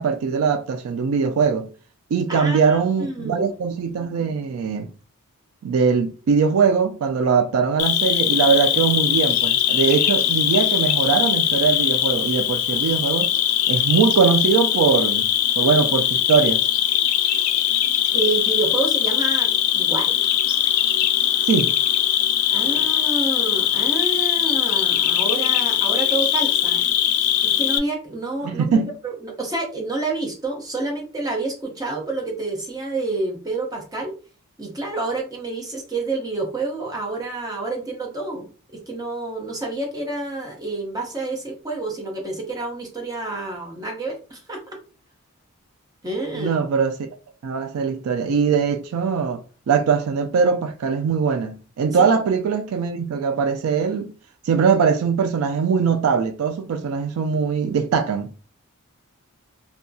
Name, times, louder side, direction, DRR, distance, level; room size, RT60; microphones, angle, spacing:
voice 1, 0.0-1.7 2.1-4.9 5.6-13.3 13.7-16.6 21.5-21.8 28.4-29.0 46.4-47.0 47.4-54.2 54.5-58.3, right 6 dB, 75° right, 0.3 m, -21 dB
voice 2, 2.3-3.6 18.1-20.1 22.5-26.8 27.4-34.1 34.6-44.6 46.0-46.6 51.9-52.1, right 3 dB, 15° right, 0.6 m, -28 dB
Cricket, 7.8-27.8, left 11 dB, 80° left, 0.3 m, -21 dB
2.6 x 2.3 x 2.6 m
head